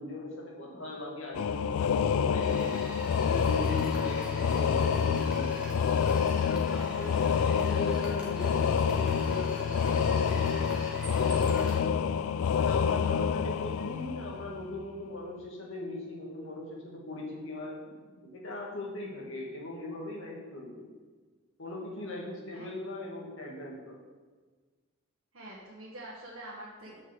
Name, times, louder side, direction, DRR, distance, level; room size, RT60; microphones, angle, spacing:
voice 1, 0.0-2.8 3.3-5.9 6.5-10.7 11.1-12.2 12.5-17.8 18.1-20.9 21.6-24.0 26.9-27.0, left 1 dB, 65° left, -3 dB, 2.0 m, -40 dB
sound 1, 1.3-14.8, left 6 dB, 85° left, 0.3 m, -28 dB
sound 2, 2.4-11.8, right 1 dB, 5° right, 1.5 m, -45 dB
voice 2, 25.3-27.0, right 1 dB, 65° right, -5 dB, 1.5 m, -45 dB
6.4 x 5.7 x 7.0 m, 1.4 s
head